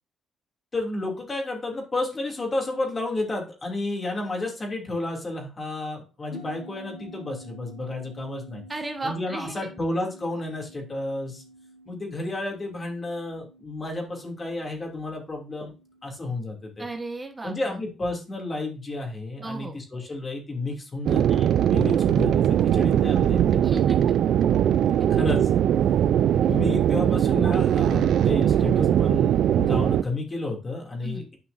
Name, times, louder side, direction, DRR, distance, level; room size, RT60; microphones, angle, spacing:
voice 1, 0.7-8.6 9.0-11.4 11.9-15.7 16.0-16.9 17.4-23.6 25.1-25.5 26.4-31.4, left 2 dB, 30° left, 1 dB, 2.6 m, -31 dB
sound 1, 6.3-19.1, equal, 90° left, 2.5 m, -50 dB
voice 2, 8.7-9.7 16.8-17.8 19.4-19.8 23.6-24.0 31.0-31.3, right 3 dB, 20° right, 3 dB, 1.2 m, -34 dB
sound 2, 21.1-30.0, right 10 dB, 75° right, 0.4 m, -20 dB
10.0 x 5.5 x 2.6 m, 0.32 s
cardioid pair, 90°, 0 cm